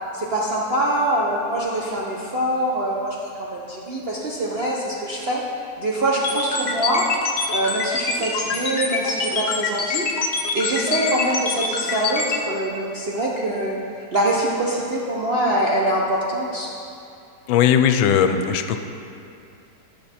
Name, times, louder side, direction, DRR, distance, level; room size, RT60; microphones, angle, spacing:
voice 1, 0.1-5.4 5.8-7.1 7.5-13.8 14.1-16.7, right 1 dB, 60° right, -4 dB, 0.6 m, -24 dB
sound 1, 6.2-12.4, left 4 dB, 50° left, 0.8 m, -24 dB
voice 2, 17.5-18.8, left 8 dB, 85° left, 8 dB, 1.3 m, -18 dB
10.0 x 6.7 x 4.3 m, 2.6 s
omnidirectional pair, 2.1 m